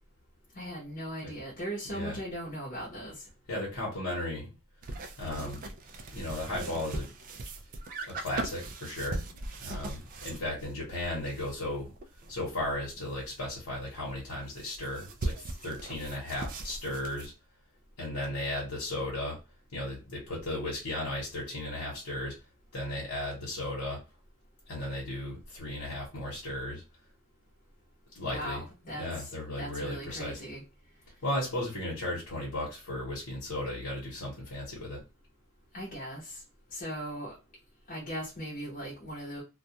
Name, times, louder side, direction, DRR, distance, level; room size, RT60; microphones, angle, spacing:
voice 1, 0.5-3.3 28.2-30.6 35.7-36.4 36.7-37.3 37.9-39.4, equal, 40° left, 0.8 m, -39 dB
voice 2, 3.5-4.5 5.2-5.6 6.1-7.1 8.0-11.9 12.3-17.3 18.0-19.4 19.7-22.4 22.7-24.0 24.7-26.8 28.1-28.6 28.9-30.4 31.2-35.0, left 1 dB, 85° left, 1.0 m, -35 dB
sound 1, 4.8-13.4 13.7-13.8 14.0-17.3, right 2 dB, 40° right, 0.3 m, -40 dB
2.2 x 2.2 x 2.7 m
head